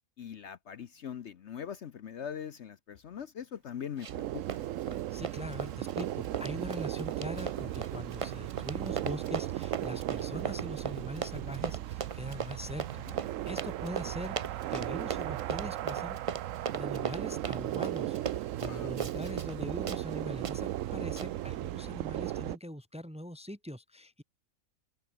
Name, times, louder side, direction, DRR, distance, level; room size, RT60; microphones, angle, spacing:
voice 1, 0.2-4.6 12.9-13.2 18.6-18.9, left 8 dB, 55° left, 1.0 m, -42 dB
Run, 4.0-4.2 4.5-19.6 19.9-20.0 20.4-20.6 21.2-21.3, right 5 dB, 35° right, 0.5 m, -38 dB
sound 1, 4.1-22.6, right 13 dB, 70° right, 0.9 m, -36 dB
voice 2, 5.1-16.2 16.7-24.2, equal, 5° right, 1.1 m, -42 dB
omnidirectional pair, 1.5 m